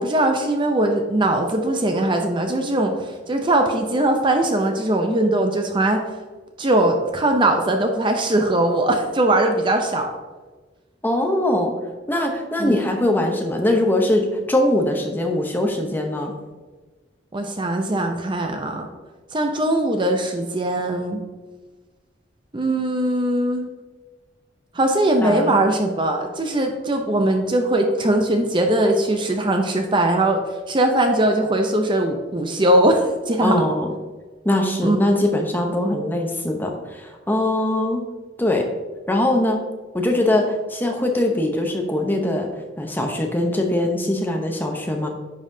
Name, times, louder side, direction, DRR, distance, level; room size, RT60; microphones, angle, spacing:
voice 1, 0.0-6.1 6.6-10.1 12.6-12.9 17.3-18.9 19.3-21.2 22.5-23.7 24.7-33.6 34.8-35.0, right 1 dB, 25° right, 4 dB, 0.5 m, -20 dB
voice 2, 11.0-11.7 12.1-16.3 25.2-25.6 33.4-33.9 34.4-38.1 38.4-38.7 39.1-39.6 39.9-42.5 42.8-45.1, left 1 dB, 10° left, 2 dB, 0.7 m, -21 dB
9.8 x 5.6 x 2.7 m, 1.3 s
head